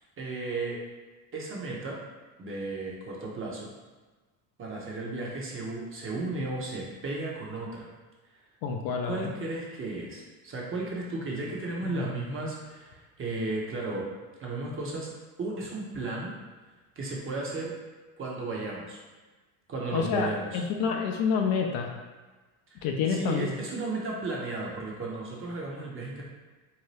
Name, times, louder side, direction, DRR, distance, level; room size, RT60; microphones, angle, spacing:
voice 1, 0.2-0.8 1.3-2.0 2.4-3.7 4.6-7.9 9.0-14.0 14.4-15.1 15.4-16.3 17.0-17.7 18.2-19.0 19.7-20.6 22.8-26.2, right 2 dB, 30° right, -3 dB, 0.8 m, -34 dB
voice 2, 8.6-9.3 11.8-12.1 19.9-21.9 22.8-23.5, left 6 dB, 55° left, 2 dB, 0.5 m, -28 dB
2.7 x 2.2 x 3.2 m, 1.3 s
supercardioid pair, 85°, 44 cm